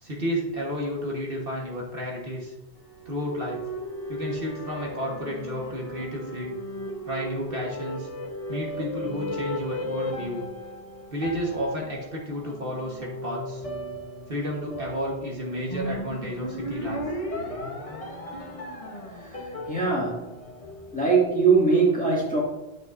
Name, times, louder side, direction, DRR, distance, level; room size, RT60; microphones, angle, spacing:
voice 1, 0.0-2.5 3.0-3.6 4.1-6.6 7.1-8.1 8.5-10.4 11.1-13.6 14.3-17.0, equal, 55° right, -2 dB, 1.6 m, -31 dB
sound 1, 2.8-21.3, equal, 30° left, 1.2 m, -36 dB
voice 2, 19.7-20.3 20.9-22.4, right 4 dB, 5° left, -5 dB, 2.1 m, -21 dB
9.8 x 6.4 x 2.6 m, 0.93 s
omnidirectional pair, 1.1 m